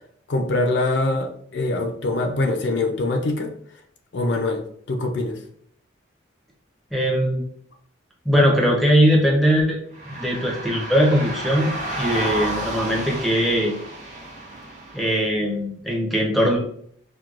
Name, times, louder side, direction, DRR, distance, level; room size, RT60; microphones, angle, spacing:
voice 1, 0.3-3.5 4.1-5.4, left 2 dB, 60° left, 3 dB, 0.4 m, -24 dB
voice 2, 6.9-7.4 8.2-9.8 10.1-11.7 12.0-13.7 14.9-16.6, equal, ahead, -1 dB, 0.6 m, -20 dB
sound 1, 9.9-15.1, right 1 dB, 40° right, 0.9 m, -31 dB
4.5 x 2.2 x 2.4 m, 0.63 s
head